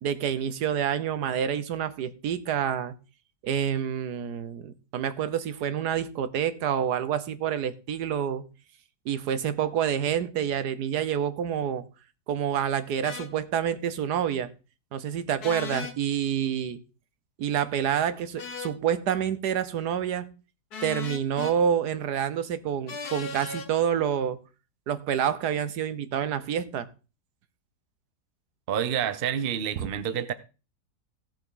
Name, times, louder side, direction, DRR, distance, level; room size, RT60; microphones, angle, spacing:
voice 1, 0.0-2.9 3.4-8.5 9.0-11.8 12.3-14.5 14.9-16.8 17.4-20.3 20.8-24.4 24.9-26.9, right 8 dB, 75° right, 1.4 m, -28 dB
sound 1, 13.0-13.3 15.4-16.0 18.4-18.8 20.7-21.6 22.9-23.7, left 5 dB, 70° left, 1.6 m, -36 dB
voice 2, 28.7-30.3, right 8 dB, 45° right, 0.8 m, -28 dB
16.5 x 6.9 x 3.9 m
omnidirectional pair, 1.8 m